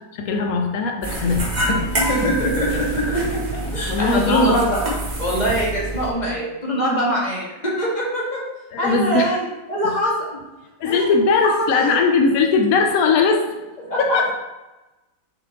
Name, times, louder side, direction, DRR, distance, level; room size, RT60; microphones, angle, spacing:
voice 1, 0.1-1.8 3.9-4.6 8.7-9.4 10.8-13.5 14.0-14.3, left 4 dB, 85° left, 4 dB, 0.7 m, -19 dB
sound 1, 1.0-6.1, right 1 dB, 30° right, 0.9 m, -26 dB
voice 2, 1.7-3.4 3.7-4.9 5.2-8.4 8.8-10.3 10.8-11.1 11.6-12.0 13.9-14.3, equal, 25° left, -4 dB, 1.6 m, -23 dB
5.8 x 5.5 x 3.6 m, 1.0 s
omnidirectional pair, 2.1 m